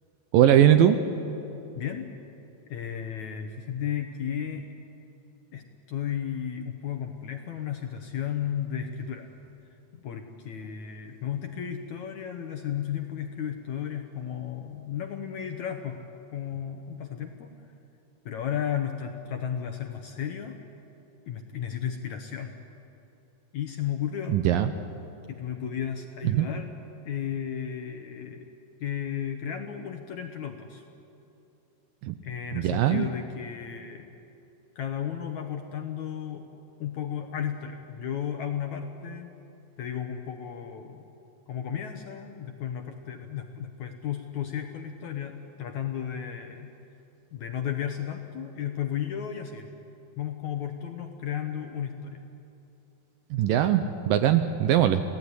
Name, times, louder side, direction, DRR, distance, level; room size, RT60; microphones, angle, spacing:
voice 1, 0.3-1.0 24.3-24.7 26.2-26.5 32.0-32.2 32.5-33.1 53.3-55.0, right 11 dB, 75° right, 9 dB, 2.2 m, -21 dB
voice 2, 1.7-2.1 2.7-4.7 5.5-9.3 9.9-16.0 16.3-17.5 18.3-20.6 21.3-22.5 23.5-24.4 25.3-26.7 27.1-28.5 28.8-30.8 32.2-34.1 34.8-36.5 36.8-39.3 39.8-41.1 41.5-46.7 47.3-49.7 50.2-52.2, left 9 dB, 65° left, 5 dB, 2.0 m, -34 dB
27.5 x 18.0 x 9.8 m, 2.9 s
omnidirectional pair, 4.7 m